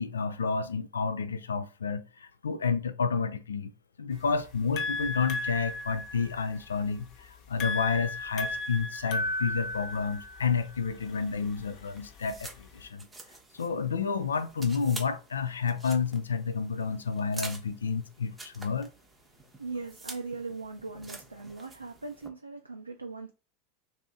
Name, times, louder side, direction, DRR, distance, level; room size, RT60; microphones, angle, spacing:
voice 1, 0.0-3.7 4.0-13.1 13.5-18.9, left 5 dB, 75° left, 0.3 m, -30 dB
sound 1, 4.1-12.9, left 2 dB, 45° left, 0.7 m, -36 dB
sound 2, 11.0-22.3, right 3 dB, 15° right, 0.8 m, -48 dB
voice 2, 19.6-23.3, right 3 dB, 85° right, 0.4 m, -39 dB
2.7 x 2.6 x 3.5 m
figure-of-eight pair, 85°, 0 cm